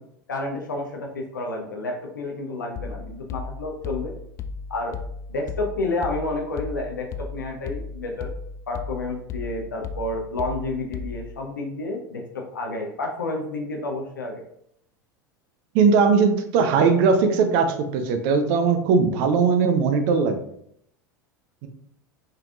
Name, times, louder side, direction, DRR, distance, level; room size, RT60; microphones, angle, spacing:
voice 1, 0.3-4.1 4.7-4.9 5.3-8.3 8.7-14.4, left 2 dB, 70° left, 0 dB, 0.8 m, -30 dB
sound 1, 2.8-11.4, left 4 dB, 30° left, 0.3 m, -36 dB
voice 2, 15.7-20.4 21.6-21.7, right 5 dB, 45° right, 8 dB, 0.6 m, -19 dB
5.6 x 3.5 x 2.4 m, 0.71 s
figure-of-eight pair, 80°, 11 cm